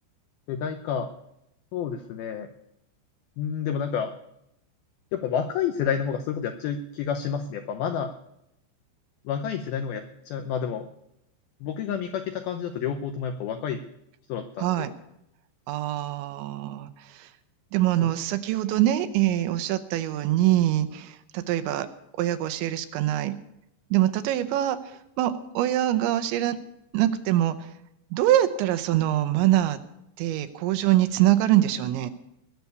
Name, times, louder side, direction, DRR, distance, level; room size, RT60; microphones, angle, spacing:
voice 1, 0.5-1.1 1.7-2.5 3.4-4.1 5.1-8.1 9.3-10.9 11.6-13.8 14.3-14.9 18.0-18.1, left 7 dB, 80° left, 7 dB, 2.1 m, -29 dB
voice 2, 14.6-14.9 15.7-17.3 17.7-21.9 22.2-23.3 23.9-26.6 26.9-27.7 28.1-29.8 30.2-32.1, right 13 dB, 80° right, 11 dB, 3.1 m, -24 dB
20.5 x 6.9 x 8.2 m, 0.81 s
omnidirectional pair, 5.4 m